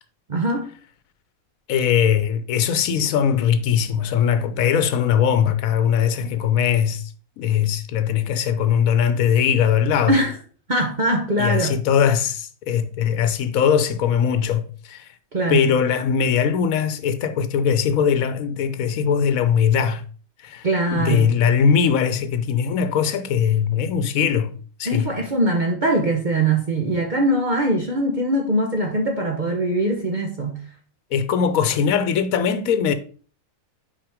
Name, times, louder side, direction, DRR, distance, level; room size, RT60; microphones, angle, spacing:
voice 1, 0.3-0.7 10.1-10.3 10.7-11.8 15.3-15.8 20.6-21.4 24.9-30.6, right 1 dB, 40° right, 1.0 m, -22 dB
voice 2, 1.7-7.0 7.4-10.2 11.4-15.1 15.5-20.0 20.4-20.7 20.9-25.1 31.1-32.9, left 7 dB, 85° left, 1.2 m, -20 dB
5.9 x 4.9 x 4.9 m
omnidirectional pair, 1.4 m